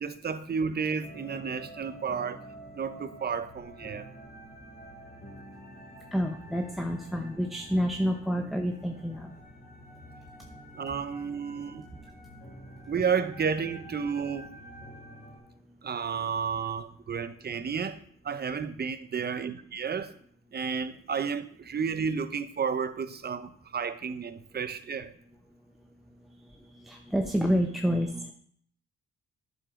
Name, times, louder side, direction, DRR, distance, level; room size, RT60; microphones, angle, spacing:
voice 1, 0.0-2.4 2.7-4.1 10.7-11.9 12.9-14.5 15.8-18.0 18.2-20.1 20.5-25.1, right 6 dB, 35° right, 0.8 m, -32 dB
sound 1, 1.0-15.4, right 1 dB, 30° left, 3.9 m, -48 dB
voice 2, 6.1-9.3 26.8-28.3, equal, ahead, 0.8 m, -28 dB
11.0 x 6.9 x 3.7 m
cardioid pair, 90°, 30 cm